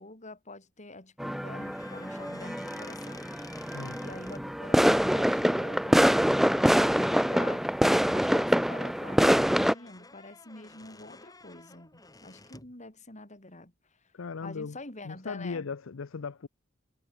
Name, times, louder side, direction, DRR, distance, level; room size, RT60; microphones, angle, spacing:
voice 1, 0.0-3.3 4.0-6.1 6.4-7.8 8.1-14.1 14.4-15.7, left 2 dB, 35° left, 4.9 m, -47 dB
sound 1, 1.2-9.7, equal, ahead, 0.4 m, -25 dB
sound 2, 1.6-4.4 6.6-6.7 7.0-7.3 7.8-12.7, left 3 dB, 20° left, 4.6 m, -52 dB
voice 2, 14.1-14.8 15.0-16.5, left 5 dB, 80° left, 0.6 m, -37 dB
head